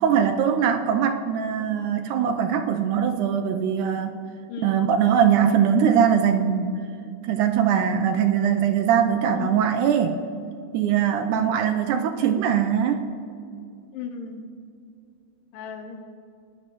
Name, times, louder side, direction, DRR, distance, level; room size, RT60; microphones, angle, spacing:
voice 1, 0.0-4.2 4.6-6.8 7.3-10.2 10.7-13.0, right 8 dB, 85° right, 6 dB, 1.8 m, -21 dB
voice 2, 4.5-4.8 9.3-9.6 11.4-11.5 13.9-14.4 15.5-16.0, left 6 dB, 80° left, 5 dB, 2.2 m, -35 dB
17.5 x 9.7 x 2.9 m, 2.4 s
omnidirectional pair, 4.1 m